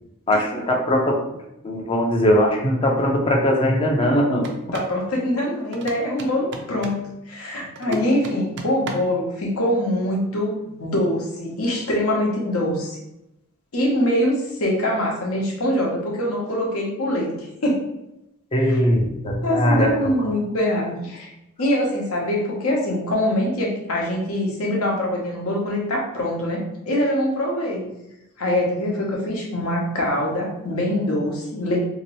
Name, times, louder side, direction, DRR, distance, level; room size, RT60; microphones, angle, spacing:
voice 1, 0.3-1.2 1.6-4.5 7.9-8.0 18.5-20.1, equal, 25° left, 0 dB, 0.5 m, -20 dB
sound 1, 4.4-5.0 5.7-7.1 7.8-9.2, right 2 dB, 55° right, 0.4 m, -36 dB
voice 2, 4.7-13.0 13.7-17.8 18.7-18.8 19.4-21.3 21.6-26.6 26.9-27.9 28.4-31.8, left 1 dB, 75° left, -1 dB, 0.9 m, -23 dB
2.9 x 2.9 x 3.0 m, 0.87 s
head